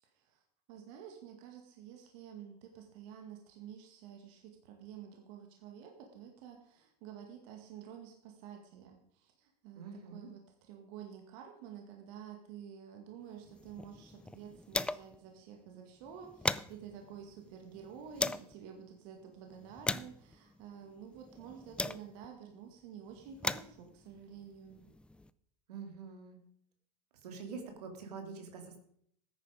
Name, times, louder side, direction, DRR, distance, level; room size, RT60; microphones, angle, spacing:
voice 1, 0.7-24.9, right 8 dB, 60° right, 3 dB, 2.1 m, -50 dB
voice 2, 9.7-10.3 25.7-26.4 27.2-28.8, right 5 dB, 85° right, 4 dB, 2.7 m, -45 dB
sound 1, 13.4-15.3 15.6-15.7 16.0-18.5 19.2-22.4 23.1-25.3, left 2 dB, 5° left, 0.4 m, -39 dB
13.5 x 10.0 x 5.1 m, 0.68 s
hypercardioid pair, 110°, 20 cm